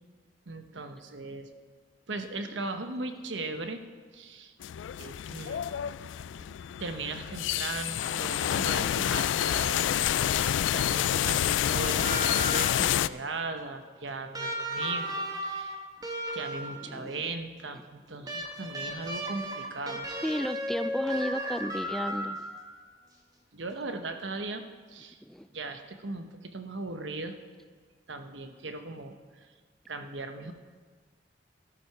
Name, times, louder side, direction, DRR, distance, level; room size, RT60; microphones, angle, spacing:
voice 1, 0.5-1.5 2.1-3.8 4.1-4.5 5.0-5.6 6.8-10.4 10.7-15.8 16.3-20.1 23.5-24.6 24.9-25.2 25.5-27.3 28.1-29.1 29.9-30.5, right 3 dB, 80° right, 7 dB, 1.0 m, -38 dB
sound 1, 4.6-13.1, left 10 dB, 85° left, 0.3 m, -28 dB
sound 2, 12.0-12.9 14.3-16.9 18.3-22.7 24.1-24.2, equal, 20° right, 1.4 m, -35 dB
voice 2, 16.8-17.3 18.2-18.4 20.1-22.4 25.2-25.5, equal, ahead, 11 dB, 0.3 m, -34 dB
13.0 x 12.5 x 4.7 m, 1.5 s
head